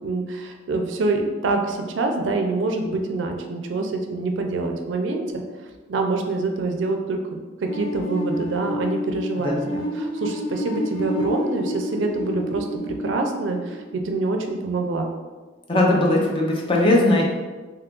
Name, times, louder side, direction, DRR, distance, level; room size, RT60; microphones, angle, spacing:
voice 1, 0.0-5.4 5.9-7.2 7.6-15.1, right 3 dB, 80° right, 3 dB, 0.4 m, -26 dB
sound 1, 7.7-14.5, left 1 dB, 70° left, 0.7 m, -30 dB
voice 2, 15.7-17.3, left 1 dB, 30° left, -2 dB, 0.5 m, -19 dB
2.8 x 2.4 x 3.6 m, 1.3 s
head